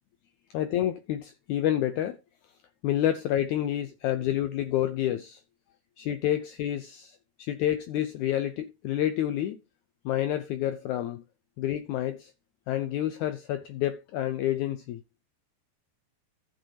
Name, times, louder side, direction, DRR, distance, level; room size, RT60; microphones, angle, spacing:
voice 1, 0.5-2.2 2.8-5.4 6.0-9.6 10.1-11.2 11.6-12.3 12.7-15.0, left 12 dB, 80° left, 1.8 m, -29 dB
14.5 x 6.3 x 2.8 m
omnidirectional pair, 4.0 m